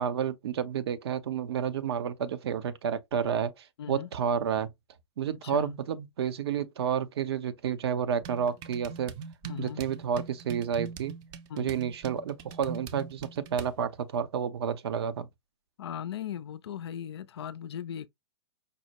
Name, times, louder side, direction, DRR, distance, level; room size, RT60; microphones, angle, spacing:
voice 1, 0.0-3.5 3.9-4.7 5.2-9.2 9.6-11.1 11.6-15.3, right 8 dB, 65° right, 0.7 m, -30 dB
voice 2, 3.8-4.1 5.4-5.7 9.4-9.8 11.5-11.8 15.8-18.1, left 9 dB, 70° left, 0.5 m, -38 dB
sound 1, 8.2-13.8, right 6 dB, 30° right, 0.5 m, -43 dB
5.4 x 2.1 x 2.9 m
hypercardioid pair, 120°, 14 cm